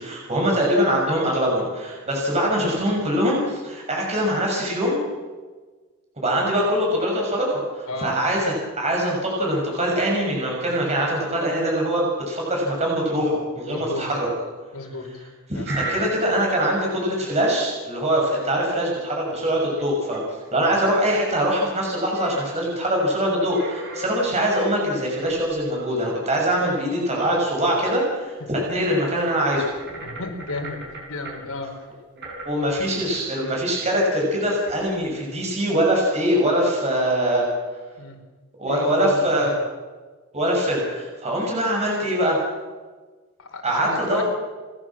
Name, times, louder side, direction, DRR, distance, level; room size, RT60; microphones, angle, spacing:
voice 1, 0.0-5.0 6.2-14.3 15.5-20.2 20.5-29.7 32.1-37.5 38.6-39.5 40.3-42.4 43.6-44.2, equal, 30° right, -2 dB, 6.6 m, -23 dB
voice 2, 13.7-14.0 14.7-15.2 15.5-15.7 29.9-30.8 31.1-31.7 38.0-38.2 38.7-39.6 43.4-44.2, left 2 dB, 80° left, 2 dB, 4.6 m, -32 dB
sound 1, 15.6-16.6 17.3-17.4 18.4-19.1 19.5-19.8 20.1-20.2 20.4-21.6 22.0-24.1 25.1-26.1 26.6-27.7 28.1-28.2 29.3-31.4 32.2-35.5, right 2 dB, 55° right, 6.8 m, -39 dB
29.5 x 12.5 x 7.6 m, 1.3 s
head